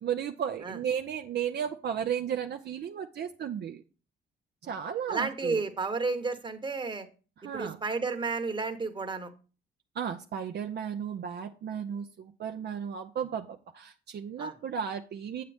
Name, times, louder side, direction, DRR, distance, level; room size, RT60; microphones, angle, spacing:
voice 1, 0.0-3.8 4.6-5.6 7.4-7.8 10.0-15.4, right 8 dB, 55° right, 6 dB, 0.6 m, -34 dB
voice 2, 5.1-7.1 7.5-9.3 14.4-14.5, right 4 dB, 25° right, 7 dB, 1.2 m, -32 dB
8.2 x 7.5 x 3.4 m, 0.36 s
cardioid pair, 90°, 20 cm